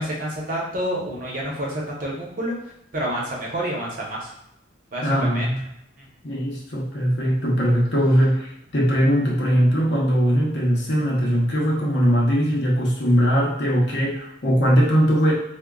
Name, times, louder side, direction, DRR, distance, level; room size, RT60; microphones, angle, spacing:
voice 1, 0.0-2.5 2.9-4.3 4.9-5.1 5.3-5.5 6.0-6.1, right 1 dB, 40° right, -3 dB, 0.8 m, -28 dB
voice 2, 5.0-5.6 6.2-15.3, equal, 55° left, -3 dB, 0.8 m, -20 dB
4.9 x 2.2 x 2.3 m, 0.81 s
head